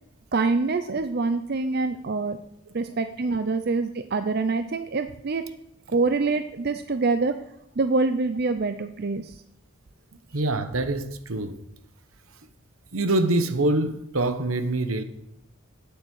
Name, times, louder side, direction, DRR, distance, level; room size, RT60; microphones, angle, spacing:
voice 1, 0.3-2.4 2.7-5.5 5.9-7.3 7.8-9.3, right 3 dB, 45° right, 0.5 m, -25 dB
voice 2, 10.3-11.6 12.9-15.0, right 2 dB, 80° right, 1.0 m, -25 dB
8.9 x 8.2 x 6.3 m
head